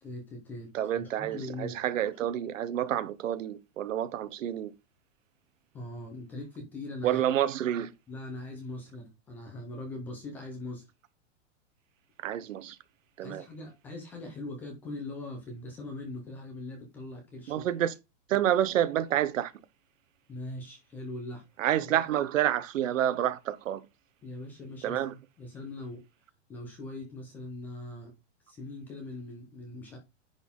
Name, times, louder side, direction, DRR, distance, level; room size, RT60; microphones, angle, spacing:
voice 1, 0.0-1.8 5.7-7.2 8.1-10.8 13.2-17.7 20.3-21.4 21.8-21.9 24.2-26.0 26.5-28.1 28.5-30.0, left 2 dB, 5° left, 0.5 m, -41 dB
voice 2, 0.7-4.7 7.0-7.9 12.2-12.8 13.2-13.4 17.5-17.9 18.3-19.5 21.6-23.8 24.8-25.1, right 11 dB, 85° right, 1.0 m, -28 dB
10.0 x 4.1 x 3.6 m
supercardioid pair, 175°, 38 cm